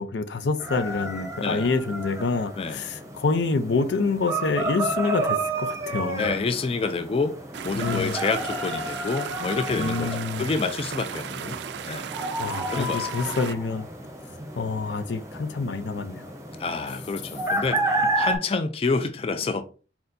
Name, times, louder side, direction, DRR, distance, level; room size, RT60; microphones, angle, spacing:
voice 1, 0.0-6.3 7.7-8.1 9.8-10.5 12.4-13.9 14.6-16.2, left 4 dB, 85° left, 0.5 m, -27 dB
sound 1, 0.6-18.4, right 1 dB, 15° right, 0.7 m, -31 dB
voice 2, 1.4-1.7 2.6-2.8 6.2-7.4 7.6-11.6 11.9-12.1 12.7-13.1 16.6-19.6, left 4 dB, 30° left, 0.3 m, -28 dB
sound 2, 7.5-13.5, right 8 dB, 75° right, 0.3 m, -36 dB
4.3 x 4.2 x 2.6 m
head